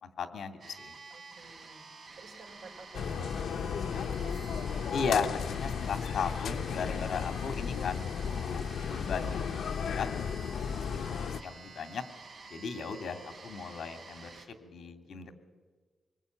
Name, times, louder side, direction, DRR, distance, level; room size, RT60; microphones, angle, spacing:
voice 1, 0.0-0.9 4.9-10.1 10.5-12.0 12.4-14.3 14.6-15.3, left 5 dB, 65° left, 8 dB, 2.5 m, -36 dB
sound 1, 0.6-14.5, right 4 dB, 45° right, 3.5 m, -50 dB
voice 2, 1.1-4.8, right 3 dB, 75° right, 3 dB, 5.5 m, -51 dB
sound 2, 2.9-11.4, left 7 dB, 90° left, 0.7 m, -34 dB
25.5 x 21.0 x 9.3 m, 1.4 s
wide cardioid pair, 170°, 0 cm